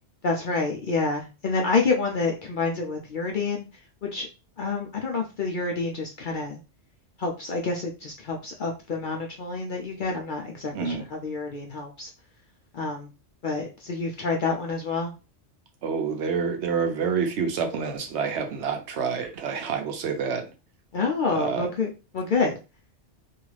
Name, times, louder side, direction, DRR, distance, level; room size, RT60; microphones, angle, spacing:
voice 1, 0.2-3.6 4.0-4.3 4.6-6.6 7.2-12.1 12.7-13.1 13.4-15.1 20.9-22.5, left 4 dB, 55° left, 0.6 m, -28 dB
voice 2, 10.7-11.0 15.8-20.5 21.3-21.7, right 6 dB, 70° right, 0.9 m, -28 dB
2.7 x 2.4 x 3.2 m
omnidirectional pair, 1.3 m